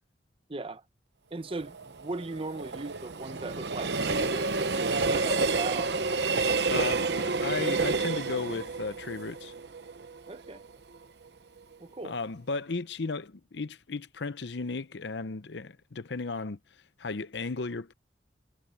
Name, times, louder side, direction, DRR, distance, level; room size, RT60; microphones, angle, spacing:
voice 1, 0.5-0.8 1.3-6.0 10.3-10.6 11.8-12.2, right 2 dB, 30° right, 0.9 m, -38 dB
Train, 1.5-10.6 11.0-11.1, right 3 dB, 65° right, 0.9 m, -29 dB
voice 2, 6.7-9.5 12.0-16.6 17.0-17.9, left 3 dB, 70° left, 0.7 m, -35 dB
head